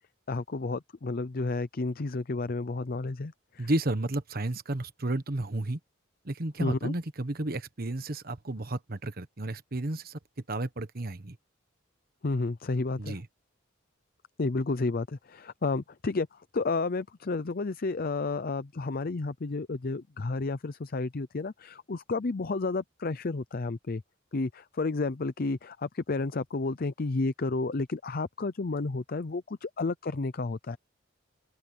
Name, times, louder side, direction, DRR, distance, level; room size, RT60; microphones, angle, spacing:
voice 1, 0.3-3.7 6.6-6.9 12.2-13.2 14.4-24.0 24.3-30.8, left 3 dB, 50° left, 0.6 m, -31 dB
voice 2, 3.6-5.8 6.2-10.2 10.5-11.4 13.0-13.3, right 2 dB, 50° right, 1.2 m, -32 dB
open air
head